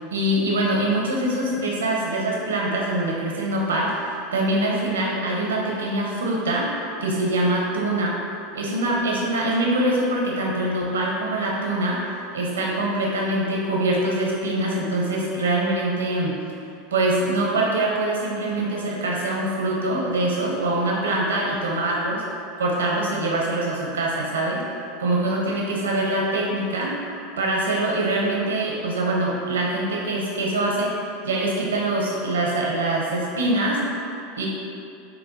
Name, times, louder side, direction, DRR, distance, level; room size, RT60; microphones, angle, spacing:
voice 1, 0.1-6.7 7.0-8.2 8.5-12.0 12.3-16.4 16.9-22.2 22.6-24.7 25.0-27.0 27.4-30.9 31.2-33.8 34.4-34.5, right 1 dB, 85° right, -2 dB, 0.6 m, -24 dB
5.5 x 2.2 x 2.6 m, 2.6 s
hypercardioid pair, 90°, 0 cm